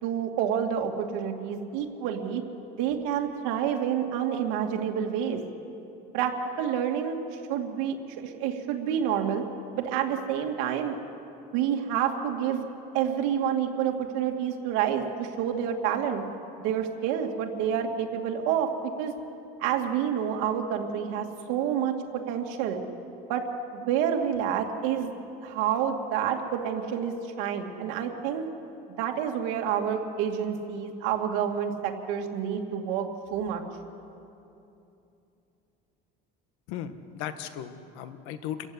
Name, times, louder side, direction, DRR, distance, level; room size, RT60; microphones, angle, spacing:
voice 1, 0.0-2.4 2.8-5.4 6.1-9.4 9.7-11.0 11.5-12.7 12.9-16.2 16.6-18.7 19.0-19.1 19.6-22.8 23.3-23.5 23.7-25.1 25.4-28.4 29.0-33.6, right 8 dB, 80° right, 3 dB, 2.5 m, -28 dB
voice 2, 36.7-38.7, left 10 dB, 80° left, 10 dB, 1.6 m, -37 dB
27.5 x 15.0 x 9.8 m, 2.8 s
cardioid pair, 145°, 20 cm